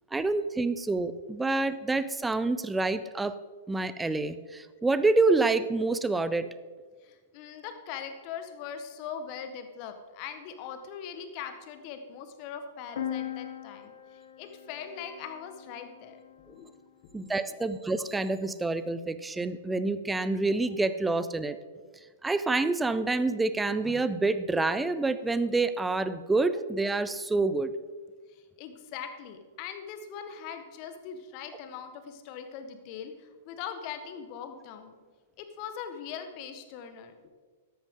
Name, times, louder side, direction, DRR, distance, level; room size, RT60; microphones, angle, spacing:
voice 1, 0.1-3.4 3.7-6.5 17.1-21.6 22.2-27.7, right 3 dB, 10° right, 13 dB, 0.6 m, -27 dB
voice 2, 7.0-16.2 16.5-16.7 17.0-17.7 28.3-34.9 35.4-37.3, left 7 dB, 40° left, 8 dB, 1.5 m, -41 dB
sound 1, 13.0-16.7, left 10 dB, 65° left, 1.3 m, -40 dB
13.5 x 11.5 x 3.8 m, 1.5 s
figure-of-eight pair, 105°, 0 cm